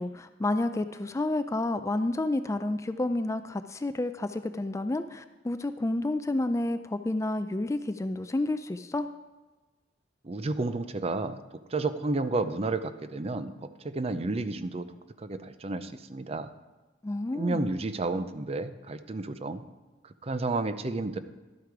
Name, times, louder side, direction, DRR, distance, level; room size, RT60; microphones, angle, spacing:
voice 1, 0.0-9.1 17.0-17.7, left 2 dB, 15° left, 10 dB, 0.3 m, -30 dB
voice 2, 10.2-11.4 11.7-14.9 15.2-16.5 17.3-19.6 20.0-21.2, right 3 dB, 35° right, 11 dB, 0.5 m, -31 dB
12.0 x 8.2 x 4.8 m, 1.2 s
head